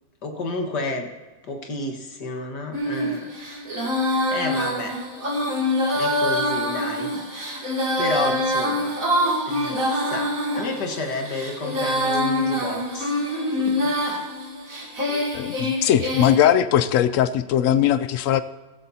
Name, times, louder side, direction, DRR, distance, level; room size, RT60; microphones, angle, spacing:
voice 1, 0.2-1.1 1.4-3.3 4.0-5.0 5.9-7.1 7.4-8.9 9.5-13.1 13.6-13.9 15.1-15.3, left 2 dB, 70° left, 3 dB, 2.2 m, -31 dB
Female singing, 2.7-16.4, left 1 dB, 50° right, 3.0 m, -25 dB
voice 2, 15.3-18.4, left 10 dB, 85° left, 13 dB, 0.7 m, -20 dB
15.0 x 14.0 x 2.8 m, 1.2 s
omnidirectional pair, 1.9 m